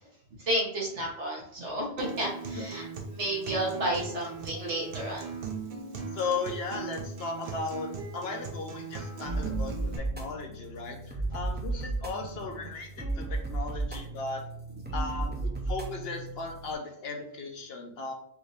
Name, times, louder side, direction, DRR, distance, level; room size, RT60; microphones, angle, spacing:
voice 1, 0.4-2.9 3.1-5.2, right 1 dB, 80° right, -3 dB, 1.7 m, -31 dB
Acoustic guitar, 2.0-10.0, right 4 dB, 60° right, 0.9 m, -39 dB
voice 2, 6.1-14.4 14.9-18.1, left 4 dB, 65° left, 2 dB, 0.9 m, -36 dB
sound 1, 9.2-16.7, right 2 dB, 15° right, 0.4 m, -34 dB
4.7 x 2.7 x 3.2 m, 0.66 s
omnidirectional pair, 1.2 m